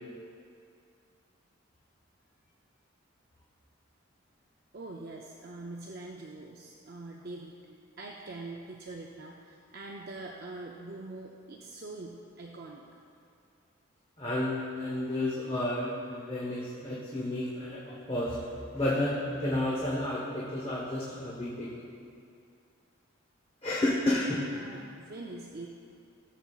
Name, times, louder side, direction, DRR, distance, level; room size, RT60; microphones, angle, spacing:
voice 1, 4.7-12.8 24.5-25.7, right 2 dB, 50° right, -1 dB, 0.5 m, -44 dB
voice 2, 14.2-21.9 23.6-24.5, left 1 dB, 25° left, -6 dB, 1.0 m, -31 dB
16.0 x 7.1 x 2.4 m, 2.4 s
head